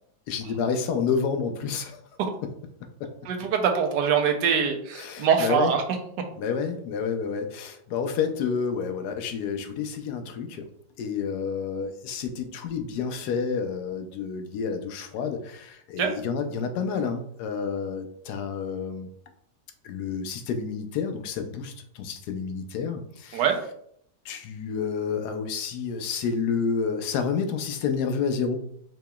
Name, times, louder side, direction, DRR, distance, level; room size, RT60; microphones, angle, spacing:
voice 1, 0.3-2.0 2.4-2.5 3.0-3.1 4.9-5.7 6.4-10.7 11.0-19.1 19.8-23.4 24.2-28.6, left 6 dB, 75° left, 7 dB, 1.1 m, -29 dB
voice 2, 3.3-5.8 16.0-16.1 23.3-23.6, right 7 dB, 85° right, 4 dB, 1.3 m, -23 dB
4.7 x 3.0 x 2.3 m, 0.68 s
omnidirectional pair, 1.8 m